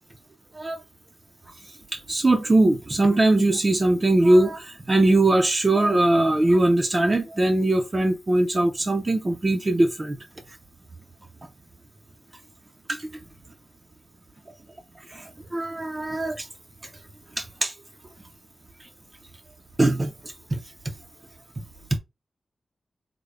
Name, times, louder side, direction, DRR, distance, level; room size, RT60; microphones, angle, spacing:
voice 1, 1.9-10.2 12.9-13.1 15.1-16.5 17.4-17.7 19.8-20.9 21.6-21.7 21.9-22.0, right 2 dB, 25° right, 0.4 m, -21 dB
3.6 x 2.0 x 3.3 m
wide cardioid pair, 130°, 0 cm